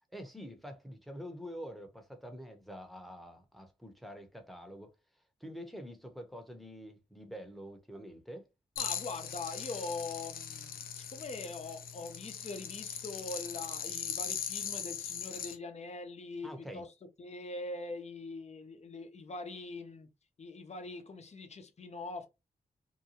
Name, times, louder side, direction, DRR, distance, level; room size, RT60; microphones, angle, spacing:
voice 1, 0.1-4.9 5.4-8.5 16.4-16.9, equal, ahead, 0.9 m, -46 dB
sound 1, 8.8-15.6, left 8 dB, 85° left, 0.5 m, -40 dB
voice 2, 8.8-16.9 17.2-20.1 20.4-22.3, left 3 dB, 50° left, 0.8 m, -43 dB
2.8 x 2.2 x 2.8 m
cardioid pair, 50°, 15 cm